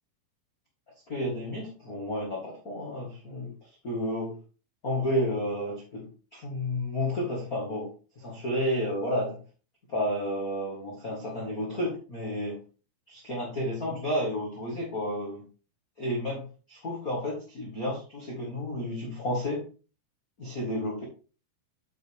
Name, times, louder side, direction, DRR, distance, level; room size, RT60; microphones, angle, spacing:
voice 1, 1.1-4.4 4.8-9.4 9.9-12.6 13.1-15.5 16.0-16.4 16.7-19.7 20.4-21.0, left 1 dB, 40° left, -3 dB, 1.3 m, -31 dB
8.3 x 6.5 x 3.5 m, 0.35 s
omnidirectional pair, 4.8 m